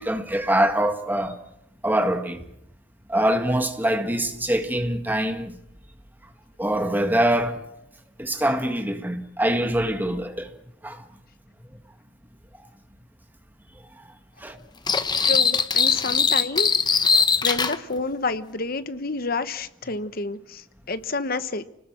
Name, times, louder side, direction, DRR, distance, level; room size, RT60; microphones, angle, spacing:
voice 1, 0.0-1.4 1.8-2.4 3.1-5.5 6.6-7.6 8.2-10.5 10.8-11.0 14.4-14.6 17.1-17.2, right 1 dB, 10° right, 1.8 m, -24 dB
sound 1, 14.9-17.8, left 5 dB, 20° left, 1.0 m, -21 dB
voice 2, 15.2-16.7 17.1-21.6, left 3 dB, 50° left, 1.1 m, -29 dB
29.0 x 19.5 x 6.1 m
head